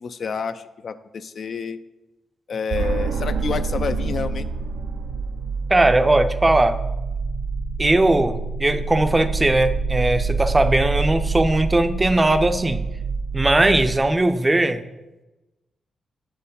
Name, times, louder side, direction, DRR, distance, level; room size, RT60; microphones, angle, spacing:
voice 1, 0.0-1.8 2.5-4.5, left 5 dB, 55° left, 11 dB, 0.3 m, -29 dB
sound 1, 2.7-14.0, right 4 dB, 90° right, 0.5 m, -26 dB
voice 2, 5.7-6.8 7.8-12.8 13.3-14.8, right 2 dB, 20° right, 9 dB, 0.5 m, -19 dB
7.2 x 4.5 x 5.2 m, 1.0 s
cardioid pair, 95°, 0 cm